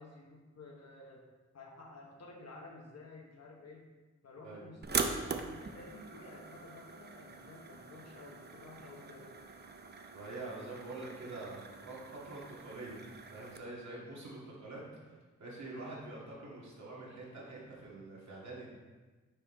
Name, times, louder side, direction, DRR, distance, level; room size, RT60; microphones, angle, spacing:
voice 1, 0.0-3.9 4.2-9.3, left 2 dB, 60° left, 0 dB, 1.1 m, -52 dB
sound 1, 4.8-13.6, right 4 dB, 35° right, 0.5 m, -42 dB
voice 2, 10.1-13.0 13.3-18.7, right 2 dB, 70° right, -5 dB, 1.9 m, -46 dB
5.5 x 5.4 x 4.3 m, 1.3 s
wide cardioid pair, 160°, 29 cm